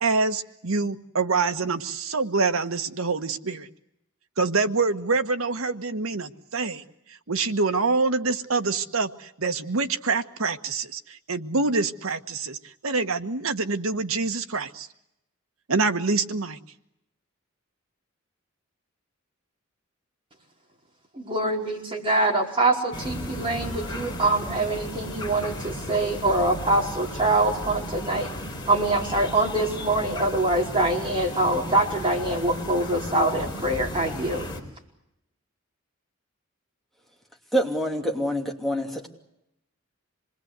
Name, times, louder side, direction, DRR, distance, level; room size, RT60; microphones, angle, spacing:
voice 1, 0.0-3.7 4.4-6.8 7.1-14.9 15.7-16.6, right 4 dB, 75° right, 9 dB, 1.3 m, -26 dB
voice 2, 21.2-28.3 28.7-34.5, right 2 dB, 25° right, -1 dB, 4.7 m, -24 dB
sound 1, 22.9-34.6, left 1 dB, 20° left, 4.0 m, -35 dB
voice 3, 37.5-39.1, equal, ahead, 1 dB, 2.7 m, -26 dB
26.5 x 20.5 x 8.1 m, 0.83 s
head